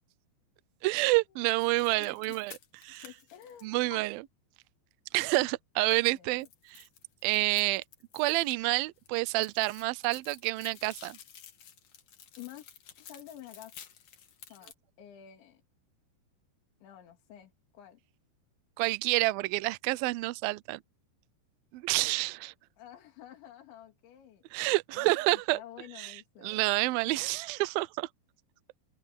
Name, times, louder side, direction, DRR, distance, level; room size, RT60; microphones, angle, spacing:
voice 1, 0.8-2.5 2.8-3.0 3.6-4.3 5.1-6.8 7.2-7.8 8.1-11.2 18.8-20.8 21.7-22.5 24.5-25.6 26.0-26.1 26.4-28.1, right 22 dB, 90° right, 2.0 m, -28 dB
sound 1, 1.6-4.0 5.9-8.5 8.8-14.7, left 8 dB, 55° left, 2.5 m, -52 dB
voice 2, 2.0-2.4 2.9-4.1 6.1-6.5 12.4-12.7 13.0-13.8 14.5-15.6 16.8-18.0 22.8-24.4 24.9-26.6, left 11 dB, 85° left, 5.2 m, -50 dB
omnidirectional pair, 5.1 m